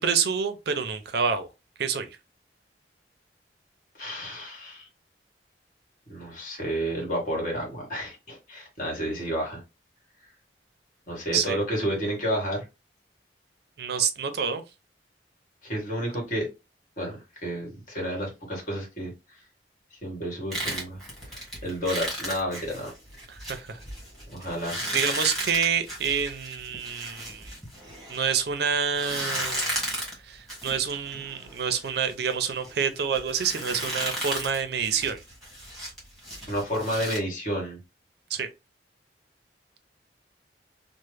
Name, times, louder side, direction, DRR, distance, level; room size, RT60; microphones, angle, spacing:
voice 1, 0.0-1.5 1.8-2.1 11.3-11.6 13.8-14.6 23.3-23.8 24.9-27.5 28.1-29.7 30.2-35.2 38.3-38.5, right 6 dB, 60° right, 0.5 m, -27 dB
voice 2, 4.0-4.9 6.1-9.6 11.1-12.6 15.6-16.5 17.0-19.1 20.0-21.0 21.3-22.9 24.3-24.8 36.5-37.8, equal, 45° left, 1.6 m, -31 dB
sound 1, 20.5-28.4 28.9-37.2, equal, ahead, 1.4 m, -35 dB
3.1 x 2.1 x 3.3 m
head